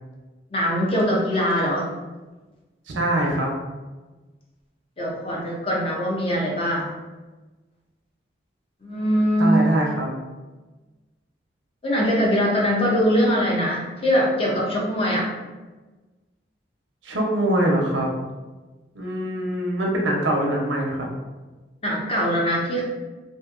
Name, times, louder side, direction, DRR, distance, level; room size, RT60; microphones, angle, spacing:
voice 1, 0.5-1.9 5.0-6.9 8.8-9.7 11.8-15.3 21.8-22.8, equal, 30° left, -3 dB, 0.5 m, -22 dB
voice 2, 2.9-3.6 9.4-10.1 17.0-18.1 18.9-21.1, right 1 dB, 90° right, -1 dB, 0.6 m, -23 dB
2.7 x 2.5 x 2.4 m, 1.2 s
head